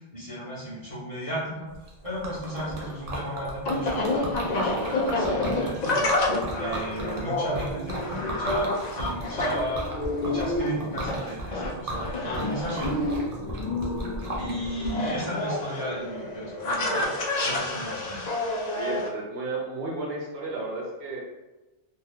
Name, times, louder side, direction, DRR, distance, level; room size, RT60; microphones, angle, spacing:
voice 1, 0.1-1.7 2.0-6.1 6.5-9.9 10.2-13.0 14.3-18.3, right 1 dB, 35° left, -8 dB, 0.9 m, -35 dB
Liquid, 1.7-14.9, right 1 dB, 45° right, 0.5 m, -36 dB
sound 1, 2.5-19.1, left 2 dB, 60° left, 0.4 m, -29 dB
voice 2, 6.6-7.2 18.7-21.2, right 2 dB, 65° right, -2 dB, 0.9 m, -33 dB
2.6 x 2.2 x 3.5 m, 1.1 s
omnidirectional pair, 1.2 m